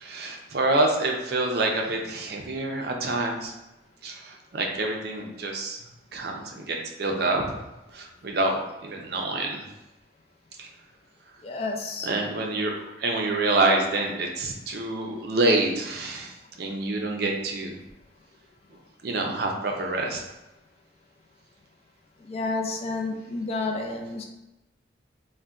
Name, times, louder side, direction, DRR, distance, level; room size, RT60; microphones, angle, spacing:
voice 1, 0.0-3.5 4.0-5.8 6.1-7.4 7.9-9.6 12.0-12.7 13.0-16.3 16.6-17.8 19.0-20.2, right 2 dB, 55° right, 1 dB, 0.5 m, -27 dB
voice 2, 11.4-12.1 22.2-24.2, left 3 dB, 35° left, 2 dB, 0.3 m, -30 dB
3.8 x 2.1 x 2.3 m, 0.99 s
head